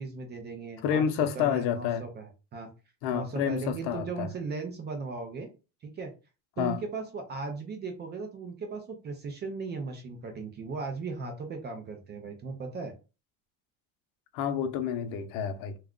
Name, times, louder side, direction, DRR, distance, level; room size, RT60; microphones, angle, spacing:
voice 1, 0.0-2.7 3.1-5.5 5.8-6.1 6.6-12.9, right 4 dB, 25° right, 0.4 m, -37 dB
voice 2, 0.8-2.0 3.0-4.3 6.6-6.8 14.3-15.8, left 8 dB, 80° left, 0.6 m, -29 dB
2.3 x 2.2 x 3.6 m
cardioid pair, 150°, 41 cm